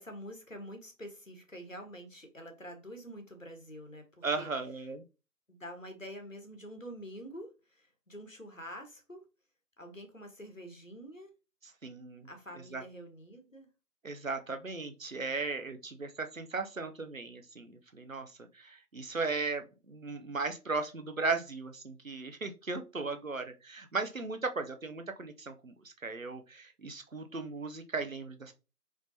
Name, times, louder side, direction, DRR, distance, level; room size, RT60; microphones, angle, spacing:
voice 1, 0.0-4.5 5.5-9.2 9.8-11.3 12.3-13.7, equal, 55° left, 1.3 m, -47 dB
voice 2, 4.2-5.0 11.8-12.3 12.7-12.8 14.0-28.6, right 3 dB, 55° right, 0.7 m, -37 dB
4.8 x 3.6 x 2.7 m
figure-of-eight pair, 175°, 48 cm